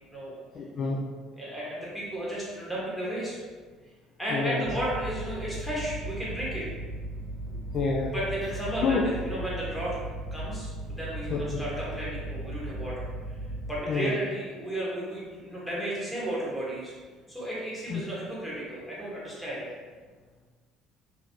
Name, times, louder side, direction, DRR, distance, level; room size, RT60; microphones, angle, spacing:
voice 1, 0.5-1.0 4.3-4.7 7.7-8.1 8.8-9.1 11.3-11.4 13.9-14.2 17.9-18.0, left 4 dB, 50° left, -1 dB, 0.3 m, -27 dB
voice 2, 1.3-3.4 4.2-6.7 8.1-10.0 10.3-13.1 13.7-16.9 17.3-19.7, right 1 dB, 5° left, -7 dB, 1.5 m, -33 dB
sound 1, 4.6-13.8, right 1 dB, 40° right, 0.5 m, -37 dB
2.9 x 2.6 x 2.9 m, 1.4 s
hypercardioid pair, 60°, 0 cm